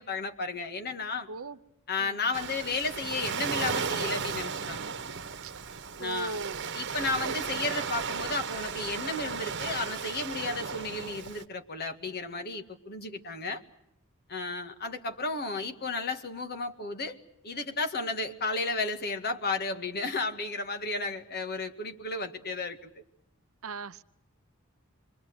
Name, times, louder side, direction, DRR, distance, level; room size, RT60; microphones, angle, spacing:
voice 1, 0.0-1.3 1.9-4.9 6.0-6.4 6.7-13.6 14.3-17.2 17.4-23.0, left 3 dB, 50° left, 5 dB, 2.0 m, -33 dB
Waves surf, 2.3-11.4, right 5 dB, 55° right, 1.3 m, -35 dB
voice 2, 5.4-6.6 7.2-7.4 23.6-24.0, right 3 dB, 70° right, 11 dB, 0.9 m, -38 dB
27.5 x 22.5 x 8.0 m, 0.81 s
head